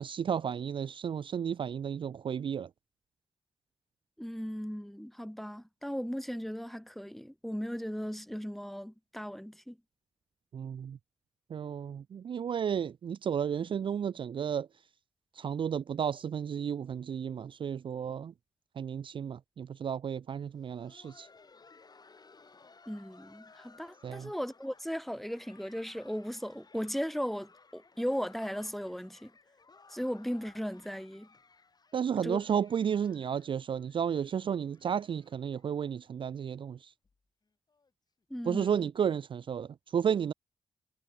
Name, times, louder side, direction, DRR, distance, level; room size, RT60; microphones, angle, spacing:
voice 1, 0.0-2.7 10.5-11.0 11.5-14.7 15.4-18.3 18.8-21.3 24.0-24.3 31.9-36.9 38.4-40.3, right 8 dB, 55° right, 0.4 m, -32 dB
voice 2, 4.2-9.8 22.9-29.3 29.9-31.3 32.2-32.4 38.3-38.9, equal, ahead, 2.9 m, -37 dB
Laughter, 20.4-36.1 36.4-36.5 37.0-37.2 37.7-37.9 39.0-39.1, left 4 dB, 40° left, 4.6 m, -60 dB
cardioid pair, 75°, 10 cm